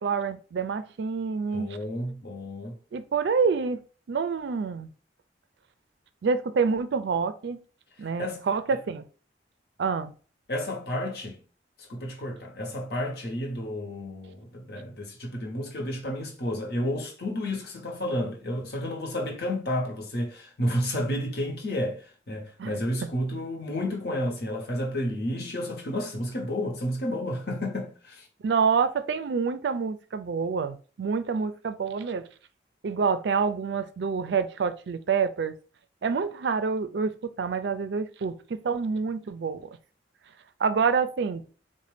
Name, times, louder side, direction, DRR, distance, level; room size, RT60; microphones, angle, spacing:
voice 1, 0.0-1.8 2.9-3.8 4.1-4.9 6.2-7.6 8.0-9.0 9.8-10.1 22.6-22.7 23.0-23.1 28.4-32.3 32.8-35.5 36.0-39.7 40.6-41.4, right 5 dB, 65° right, 0.4 m, -27 dB
voice 2, 1.5-2.8 8.0-8.4 10.5-11.4 11.9-28.3, left 1 dB, 55° left, 0.9 m, -31 dB
4.0 x 2.2 x 3.2 m
head